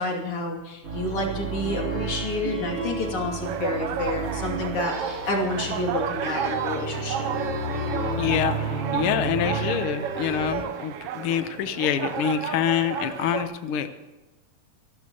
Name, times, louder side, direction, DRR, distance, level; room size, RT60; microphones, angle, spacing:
voice 1, 0.0-7.3, left 2 dB, 45° left, 0 dB, 3.4 m, -29 dB
sound 1, 0.8-10.6, right 3 dB, 50° right, 4.6 m, -31 dB
sound 2, 3.4-13.4, right 8 dB, 85° right, 1.3 m, -32 dB
voice 2, 8.2-14.0, left 9 dB, 90° left, 9 dB, 1.2 m, -26 dB
25.5 x 12.5 x 3.0 m, 1.1 s
omnidirectional pair, 3.7 m